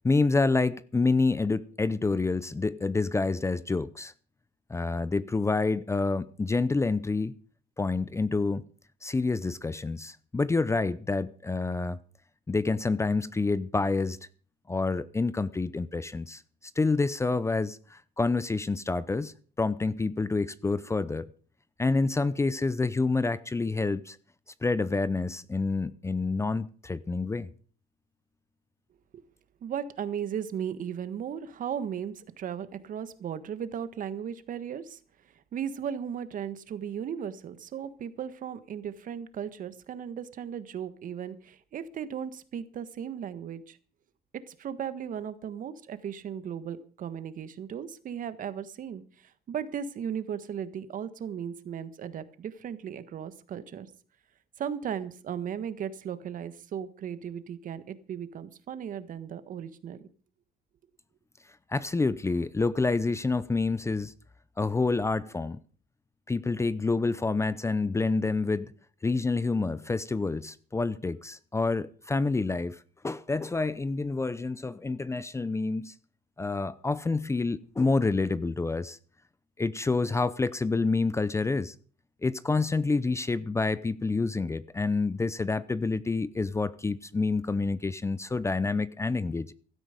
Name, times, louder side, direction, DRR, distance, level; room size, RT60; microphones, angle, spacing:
voice 1, 0.0-4.1 4.7-7.4 7.8-8.6 9.0-12.0 12.5-14.2 14.7-16.4 16.8-21.3 21.8-24.2 24.6-27.5 61.7-64.1 64.6-65.6 66.3-68.7 69.0-75.9 76.4-79.0 79.6-81.7 82.2-89.5, left 3 dB, 15° left, 0.6 m, -28 dB
voice 2, 29.6-35.0 35.5-43.8 44.3-53.9 54.6-60.0, right 8 dB, 50° right, 1.5 m, -36 dB
16.0 x 12.5 x 5.2 m
cardioid pair, 110°, 17 cm